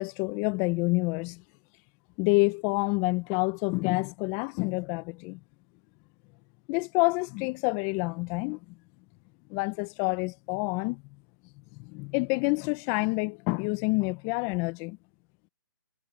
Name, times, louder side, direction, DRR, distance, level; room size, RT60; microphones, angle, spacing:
voice 1, 0.0-1.4 2.2-5.4 6.7-8.8 9.5-11.0 11.8-15.0, left 28 dB, 25° left, 1.0 m, -28 dB
hypercardioid pair, 145°, 12 cm